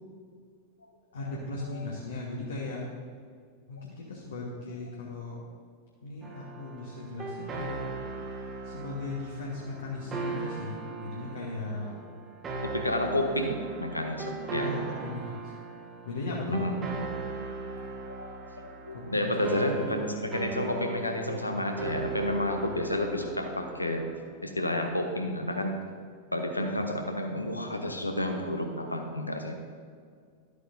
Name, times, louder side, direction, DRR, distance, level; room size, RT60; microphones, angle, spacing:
voice 1, 1.1-2.8 3.7-5.4 6.0-7.9 8.6-12.0 14.5-15.5 16.0-16.7 18.9-19.7, left 2 dB, 70° left, -4 dB, 1.3 m, -37 dB
sound 1, 6.2-24.2, right 3 dB, 25° right, 1.3 m, -39 dB
voice 2, 12.7-14.7 16.5-16.8 17.7-17.8 18.1-24.1 24.4-25.8 26.3-29.6, left 1 dB, 85° left, 4 dB, 0.9 m, -30 dB
12.0 x 8.2 x 2.7 m, 2.1 s
figure-of-eight pair, 90°, 0 cm